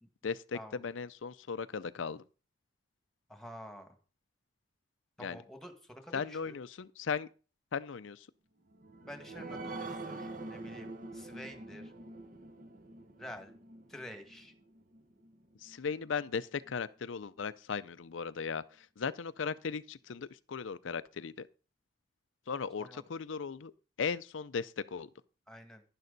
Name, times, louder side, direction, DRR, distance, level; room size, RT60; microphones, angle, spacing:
voice 1, 0.2-2.2 5.2-5.4 6.1-7.3 7.7-8.3 15.6-21.5 22.5-23.7 24.0-25.1, left 5 dB, 85° left, 0.5 m, -37 dB
voice 2, 3.3-4.0 5.2-6.6 9.1-11.9 13.2-13.5 13.9-14.5 22.8-23.0 25.5-25.8, equal, 5° left, 1.9 m, -49 dB
sound 1, 8.7-15.8 16.2-16.3 16.7-16.8, right 2 dB, 45° right, 1.3 m, -45 dB
11.0 x 11.0 x 4.0 m
head